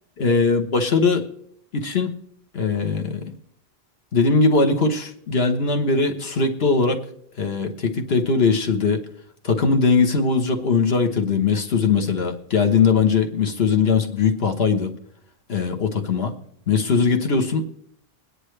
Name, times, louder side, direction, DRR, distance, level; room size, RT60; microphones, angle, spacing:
voice 1, 0.2-1.2 1.7-2.1 2.5-3.3 4.1-7.0 7.4-9.0 9.4-14.9 15.5-16.3 16.7-17.6, left 4 dB, 75° left, 4 dB, 1.4 m, -20 dB
21.5 x 9.7 x 3.3 m, 0.68 s
omnidirectional pair, 1.0 m